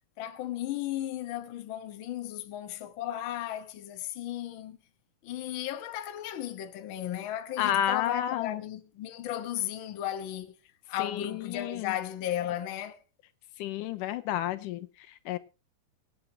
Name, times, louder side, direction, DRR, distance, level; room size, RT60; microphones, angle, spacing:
voice 1, 0.2-4.8 5.2-10.5 10.9-13.0, left 12 dB, 60° left, 1.3 m, -35 dB
voice 2, 7.6-8.6 11.0-11.9 13.6-15.4, left 11 dB, 85° left, 2.3 m, -31 dB
24.0 x 9.1 x 2.8 m
omnidirectional pair, 3.6 m